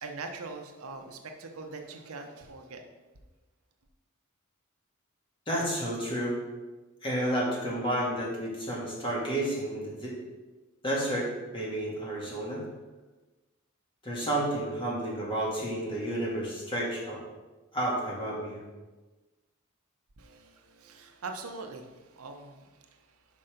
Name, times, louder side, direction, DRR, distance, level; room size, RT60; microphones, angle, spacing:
voice 1, 0.0-2.8 20.2-23.2, right 3 dB, 80° right, 4 dB, 0.8 m, -42 dB
voice 2, 5.5-6.4 7.0-10.2 10.8-12.6 14.0-17.2 17.7-18.6, right 1 dB, 25° left, -4 dB, 1.9 m, -31 dB
5.7 x 5.2 x 5.1 m, 1.2 s
head